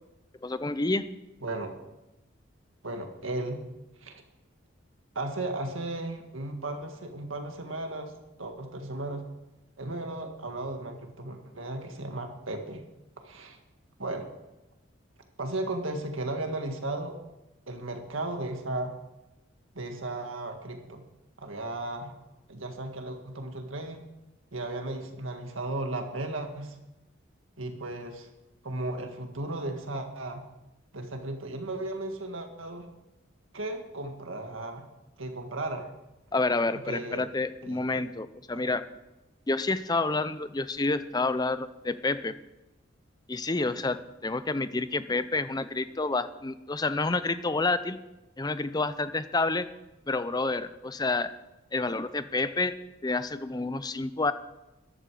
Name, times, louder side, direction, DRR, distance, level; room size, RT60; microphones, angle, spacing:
voice 1, 0.4-1.1 36.3-38.9 39.5-42.4 43.3-48.0 48.4-49.7 50.1-51.3 51.7-52.8 53.0-54.3, left 3 dB, 20° left, 13 dB, 0.6 m, -29 dB
voice 2, 1.4-1.7 2.8-3.6 4.0-4.2 5.2-8.1 8.4-9.2 9.8-12.8 13.2-13.6 14.0-14.3 15.4-17.2 17.7-19.0 19.7-21.0 21.4-22.2 22.5-24.1 24.5-26.8 27.6-28.3 28.6-30.4 30.9-32.9 33.5-34.9 35.2-35.9 36.7-37.3 37.6-38.0 38.5-38.6, right 2 dB, 90° right, 5 dB, 1.8 m, -35 dB
13.5 x 11.5 x 4.9 m, 0.98 s
head